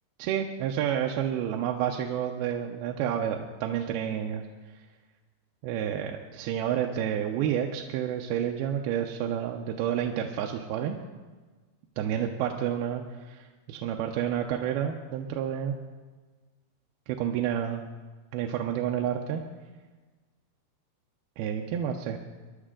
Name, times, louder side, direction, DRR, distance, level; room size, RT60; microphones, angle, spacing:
voice 1, 0.2-4.4 5.6-11.0 12.0-15.7 17.1-17.8 18.3-19.4 21.4-22.2, right 9 dB, 80° right, 2 dB, 2.6 m, -30 dB
22.5 x 11.0 x 3.7 m, 1.3 s
omnidirectional pair, 4.5 m